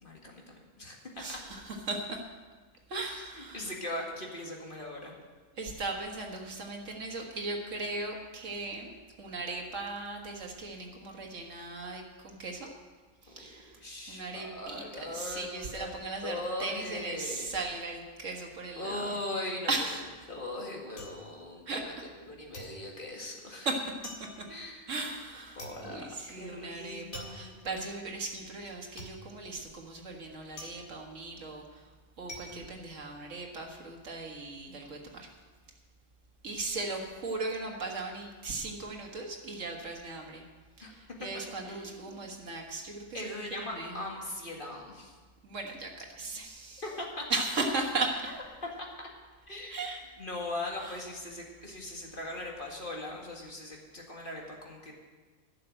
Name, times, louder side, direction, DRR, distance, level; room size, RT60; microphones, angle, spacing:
voice 1, 0.0-1.4 3.0-5.1 13.3-17.5 18.8-19.9 20.3-21.9 22.3-23.7 24.5-24.9 25.6-27.6 32.4-32.8 40.8-41.0 41.7-42.2 43.1-45.1 46.3-46.4 46.8-47.2 49.5-49.9 50.2-54.9, left 1 dB, 40° left, -1 dB, 2.2 m, -40 dB
voice 2, 1.2-2.2 2.9-3.7 5.6-12.7 13.2-13.8 14.1-19.2 19.7-20.3 21.7-22.1 23.6-23.8 24.2-24.5 24.9-31.9 32.2-35.3 36.4-40.4 40.8-44.1 45.4-46.8 47.3-48.3 49.7-50.0 50.8-51.0, right 3 dB, 60° right, 1 dB, 2.0 m, -37 dB
sound 1, 20.1-22.2 22.5-33.7 34.0-34.6, left 1 dB, 55° left, 2.3 m, -48 dB
11.5 x 6.8 x 8.9 m, 1.4 s
omnidirectional pair, 1.5 m